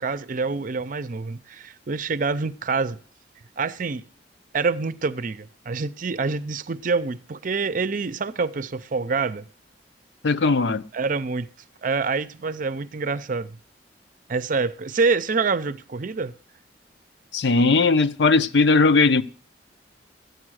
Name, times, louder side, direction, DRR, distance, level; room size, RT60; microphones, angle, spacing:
voice 1, 0.0-3.0 3.6-4.0 4.5-9.4 10.9-11.5 11.8-13.6 14.3-16.3, right 4 dB, 50° right, 0.6 m, -26 dB
voice 2, 10.2-10.8 17.3-19.2, left 3 dB, 80° left, 0.7 m, -18 dB
13.5 x 9.3 x 6.3 m
head